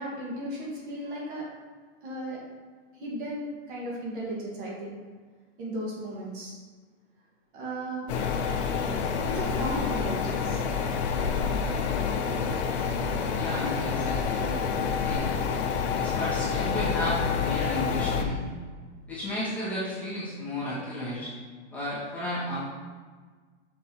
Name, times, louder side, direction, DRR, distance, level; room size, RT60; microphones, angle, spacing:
voice 1, 0.0-1.4 2.0-2.4 2.9-5.0 5.6-6.5 7.5-8.1 8.4-8.9 9.3-10.6, right 1 dB, 50° right, -4 dB, 1.9 m, -35 dB
sound 1, 8.1-18.2, left 6 dB, 70° left, 0.8 m, -28 dB
voice 2, 13.4-14.5 15.0-15.2 15.9-18.4 19.1-21.3 21.7-22.6, left 1 dB, 5° left, -12 dB, 1.8 m, -33 dB
6.5 x 5.9 x 3.0 m, 1.5 s
supercardioid pair, 165°, 34 cm